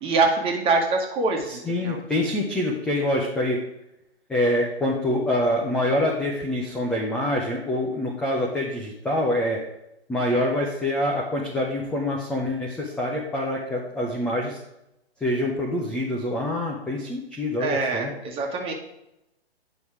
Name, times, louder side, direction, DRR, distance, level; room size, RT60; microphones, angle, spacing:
voice 1, 0.0-2.0 17.6-18.7, right 3 dB, 15° right, 1 dB, 1.5 m, -24 dB
voice 2, 1.5-3.6 4.3-9.6 10.1-14.6 15.2-18.1, left 1 dB, 5° left, -2 dB, 0.4 m, -25 dB
9.6 x 5.5 x 4.7 m, 0.86 s
figure-of-eight pair, 130°, 32 cm